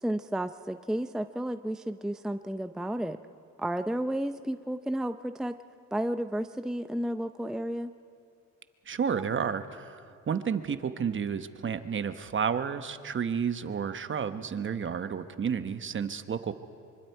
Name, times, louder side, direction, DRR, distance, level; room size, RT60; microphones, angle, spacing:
voice 1, 0.0-3.2 3.6-5.6 5.9-7.9, right 1 dB, ahead, 9 dB, 0.5 m, -32 dB
voice 2, 8.9-16.6, right 7 dB, 40° right, 11 dB, 1.1 m, -31 dB
25.0 x 24.5 x 4.6 m, 2.4 s
cardioid pair, 90°, 30 cm